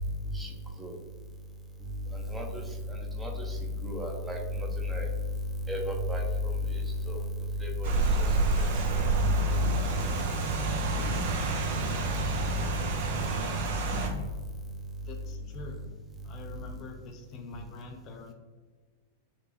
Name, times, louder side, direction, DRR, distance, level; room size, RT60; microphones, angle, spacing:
voice 1, 2.3-2.6 3.2-3.6 3.8-5.1 5.7-6.2 7.1-7.2 7.6-8.3 8.6-8.7 9.2-9.8, left 1 dB, 10° right, 1 dB, 0.7 m, -31 dB
Rain, 7.8-14.1, right 4 dB, 55° right, 0.6 m, -29 dB
voice 2, 15.0-15.8 16.2-18.3, left 4 dB, 40° left, 3 dB, 0.4 m, -45 dB
5.2 x 2.2 x 2.7 m, 1.4 s
figure-of-eight pair, 90°, 0 cm